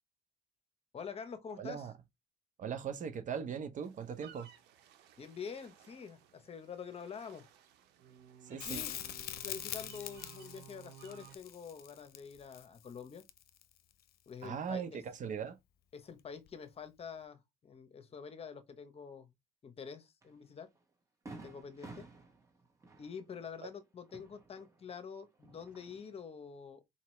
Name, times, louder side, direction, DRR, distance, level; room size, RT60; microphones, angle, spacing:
voice 1, 0.9-1.9 5.2-7.5 8.5-9.1 9.4-13.2 14.3-15.0 15.9-19.3 19.6-20.7 21.4-22.1 23.0-26.8, left 6 dB, 35° left, 0.8 m, -47 dB
voice 2, 1.6-1.9 2.6-4.5 8.4-8.8 14.4-15.6, right 7 dB, 50° right, 0.8 m, -39 dB
sound 1, 3.8-11.4, right 9 dB, 85° right, 0.8 m, -57 dB
Crackle, 8.6-13.7 16.5-16.6, left 12 dB, 65° left, 0.6 m, -43 dB
Fireworks, 20.2-20.3 20.8-20.9 21.3-25.0 25.3-26.2, right 3 dB, 20° right, 1.3 m, -53 dB
4.3 x 2.9 x 3.1 m
cardioid pair, 110°, 17 cm